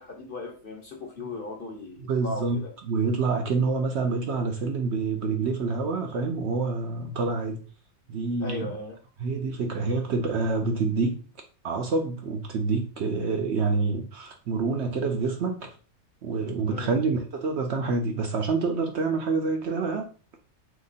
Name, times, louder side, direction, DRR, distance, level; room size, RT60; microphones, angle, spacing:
voice 1, 0.0-2.7 8.4-9.0 16.7-17.0, left 2 dB, 45° left, 0.9 m, -37 dB
voice 2, 2.0-2.6 2.9-7.6 8.1-8.7 9.2-11.2 11.6-15.8 16.2-20.1, right 4 dB, 60° right, 0.8 m, -27 dB
3.7 x 2.9 x 4.0 m
omnidirectional pair, 1.5 m